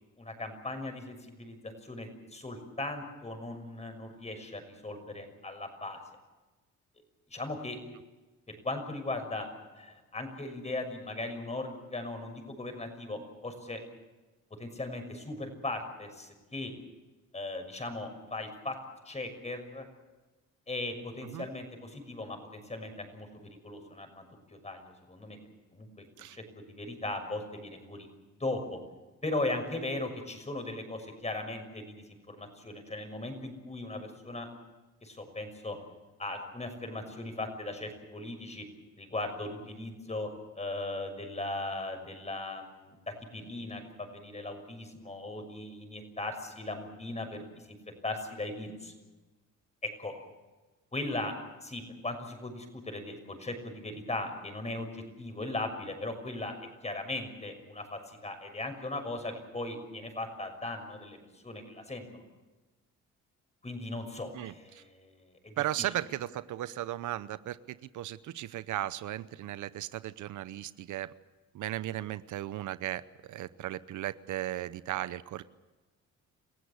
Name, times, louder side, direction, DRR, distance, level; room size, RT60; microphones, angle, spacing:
voice 1, 0.2-6.0 7.3-7.8 8.5-9.5 9.7-13.8 14.6-16.7 17.3-18.8 19.0-19.8 20.7-25.4 25.7-26.0 26.3-28.1 28.4-28.8 29.2-34.5 35.0-35.8 36.2-38.6 39.0-40.3 40.5-47.8 48.0-48.9 49.8-50.1 50.9-51.3 51.6-56.5 56.8-62.2 63.6-65.9, left 2 dB, 20° left, 6 dB, 6.3 m, -38 dB
voice 2, 64.3-64.8 65.6-71.1 71.5-73.0 73.3-75.4, right 13 dB, 80° right, 15 dB, 0.8 m, -36 dB
28.0 x 16.0 x 8.4 m, 1.2 s
cardioid pair, 90°, 30 cm